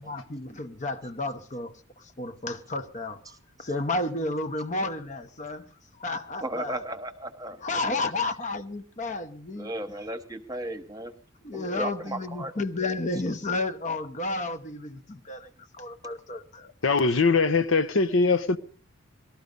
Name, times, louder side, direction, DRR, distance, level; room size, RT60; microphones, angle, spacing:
voice 1, 0.0-1.7 2.2-3.2 3.6-5.6 6.0-6.8 7.6-9.7 11.4-15.5 15.8-16.7, left 2 dB, 35° left, 0.9 m, -31 dB
voice 2, 6.4-8.0 9.5-11.1 11.5-12.6, right 1 dB, 15° right, 1.2 m, -36 dB
voice 3, 16.8-18.6, left 4 dB, 65° left, 0.8 m, -22 dB
19.5 x 13.0 x 5.3 m
head